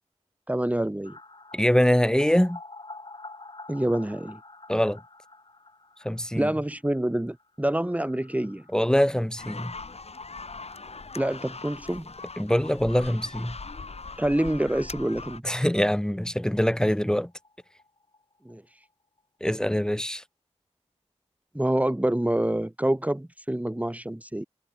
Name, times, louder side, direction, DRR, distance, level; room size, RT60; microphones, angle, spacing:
voice 1, 0.5-1.2 3.7-4.4 6.3-8.6 11.2-12.0 14.2-15.6 18.5-18.6 21.5-24.4, right 1 dB, 10° right, 2.0 m, -27 dB
sound 1, 1.0-12.6 12.9-13.0 13.3-13.4 16.4-16.5 16.8-16.9 17.1-18.9 19.2-19.3, left 3 dB, 45° left, 7.0 m, -49 dB
voice 2, 1.5-2.6 4.7-5.0 6.0-6.5 8.7-9.7 12.4-13.6 15.4-17.3 19.4-20.2, equal, 5° left, 1.9 m, -23 dB
sound 2, 9.4-15.4, left 4 dB, 60° left, 6.2 m, -41 dB
wide cardioid pair, 55°, 12 cm